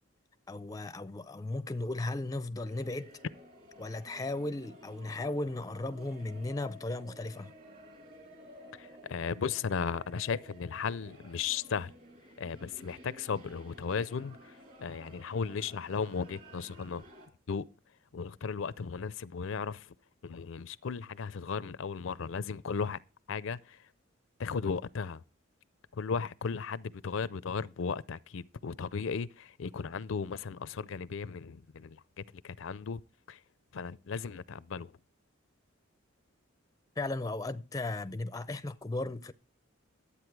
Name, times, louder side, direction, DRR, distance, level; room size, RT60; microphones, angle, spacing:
voice 1, 0.5-3.1 3.8-7.5 37.0-39.3, left 2 dB, 20° left, 0.4 m, -36 dB
sound 1, 2.6-17.3, equal, 40° right, 2.7 m, -54 dB
voice 2, 8.7-11.9 12.4-17.0 17.5-17.7 18.1-19.9 20.2-23.0 23.3-23.9 24.4-25.2 25.9-33.0 33.3-33.4 33.7-34.9, left 5 dB, 75° left, 0.5 m, -36 dB
11.5 x 8.4 x 4.6 m
head